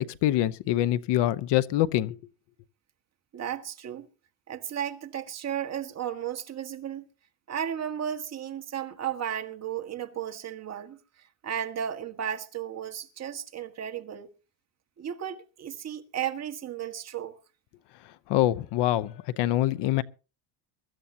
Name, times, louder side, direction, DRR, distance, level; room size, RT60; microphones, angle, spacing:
voice 1, 0.0-2.2 18.3-20.0, left 14 dB, 60° left, 0.9 m, -25 dB
voice 2, 3.3-4.1 4.5-7.0 7.5-11.0 11.4-14.3 15.0-17.4, right 9 dB, 35° right, 1.7 m, -34 dB
23.5 x 13.5 x 2.8 m
cardioid pair, 125°, 48 cm